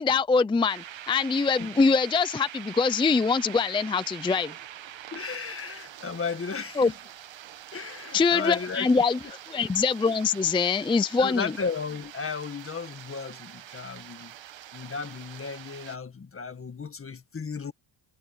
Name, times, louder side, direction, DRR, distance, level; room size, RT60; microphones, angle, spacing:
voice 1, 0.0-4.6 6.8-6.9 8.1-9.2 9.5-11.5, left 4 dB, 10° left, 0.4 m, -23 dB
sound 1, 0.7-16.0, right 11 dB, 70° right, 1.5 m, -44 dB
voice 2, 5.1-6.9 7.7-8.9 11.2-14.3 14.7-17.7, left 5 dB, 25° left, 1.9 m, -34 dB
cardioid pair, 155°, 47 cm